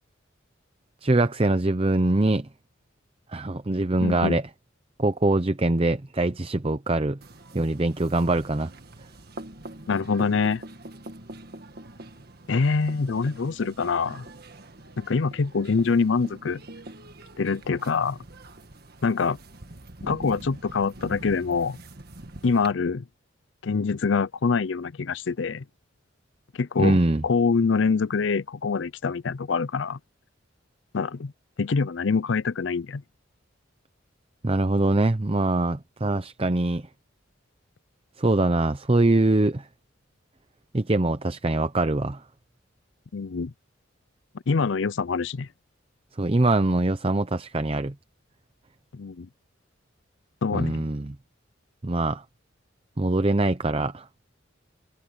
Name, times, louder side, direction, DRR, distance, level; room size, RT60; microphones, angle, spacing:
voice 1, 1.0-2.5 3.3-4.4 5.0-7.2 7.5-8.7 26.8-27.2 34.4-36.9 38.2-39.7 40.7-42.2 46.2-47.9 50.5-51.2 51.8-52.2 53.0-54.1, right 2 dB, 30° right, 0.7 m, -23 dB
voice 2, 4.0-4.4 9.9-10.6 12.5-14.3 15.0-16.6 17.4-18.2 19.0-19.4 20.0-21.8 22.4-23.0 23.6-25.6 26.6-30.0 30.9-31.3 31.6-33.0 43.1-43.5 44.5-45.5 48.9-49.3 50.4-50.9, left 5 dB, 70° left, 0.5 m, -25 dB
sound 1, 7.2-22.7, right 1 dB, 50° right, 1.7 m, -44 dB
head